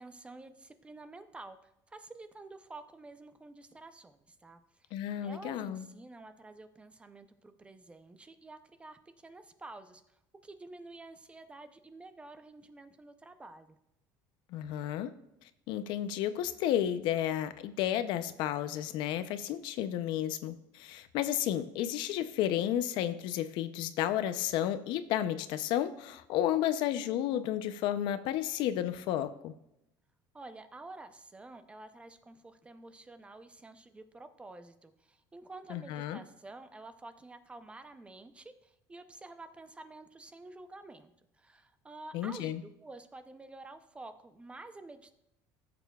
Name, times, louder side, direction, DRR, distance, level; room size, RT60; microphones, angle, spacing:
voice 1, 0.0-1.6 1.9-4.9 5.2-10.0 10.4-13.8 30.3-41.1 41.4-42.5 42.8-45.1, right 2 dB, 15° right, 10 dB, 0.5 m, -50 dB
voice 2, 4.9-5.8 14.5-15.1 15.7-29.5 35.7-36.2 42.1-42.6, left 11 dB, 70° left, 12 dB, 0.5 m, -32 dB
15.5 x 6.8 x 2.3 m, 0.83 s
cardioid pair, 135°, 8 cm